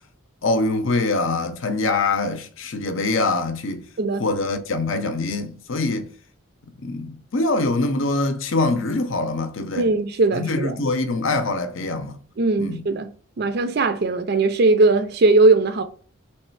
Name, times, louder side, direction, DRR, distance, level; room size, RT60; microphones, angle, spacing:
voice 1, 0.4-3.8 4.2-6.1 6.8-9.9 10.3-12.2 12.6-12.8, left 2 dB, 70° left, 0.7 m, -24 dB
voice 2, 9.7-10.7 12.4-13.1 13.4-15.8, right 3 dB, 50° right, 0.4 m, -19 dB
3.2 x 3.2 x 4.5 m
head